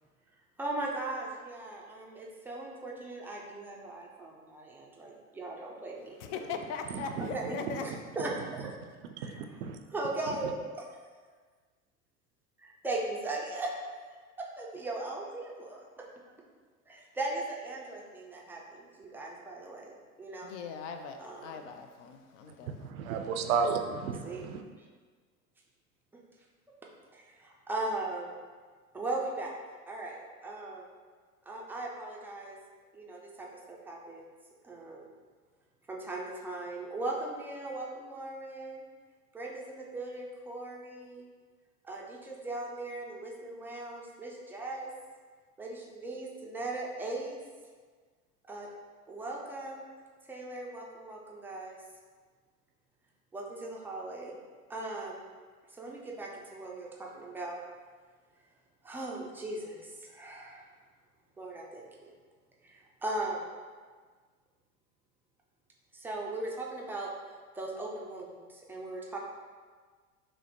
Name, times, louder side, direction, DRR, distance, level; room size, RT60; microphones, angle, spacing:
voice 1, 0.6-6.2 7.2-8.7 9.3-9.4 9.9-10.5 12.6-13.7 14.0-14.1 14.6-16.1 16.9-20.5 21.2-21.7 24.2-24.4 27.1-28.3 28.9-29.5 29.9-30.8 31.5-32.6 32.9-34.2 34.6-35.0 35.9-38.8 39.3-41.2 41.8-44.9 45.6-47.4 48.5-48.7 49.1-49.8 50.3-51.8 53.3-54.3 54.7-55.2 55.7-57.6 58.8-60.7 61.4-62.1 62.6-63.5 65.9-67.1 67.5-69.2, right 2 dB, 5° right, -2 dB, 0.4 m, -38 dB
voice 2, 6.2-7.8 20.4-22.8, left 5 dB, 55° left, 6 dB, 0.5 m, -40 dB
voice 3, 6.9-7.3 7.7-7.8 8.2-8.3 9.2-9.8 10.3-10.4 22.6-24.6, right 5 dB, 65° right, 5 dB, 0.5 m, -33 dB
6.0 x 2.1 x 2.9 m, 1.5 s
hypercardioid pair, 80°, 44 cm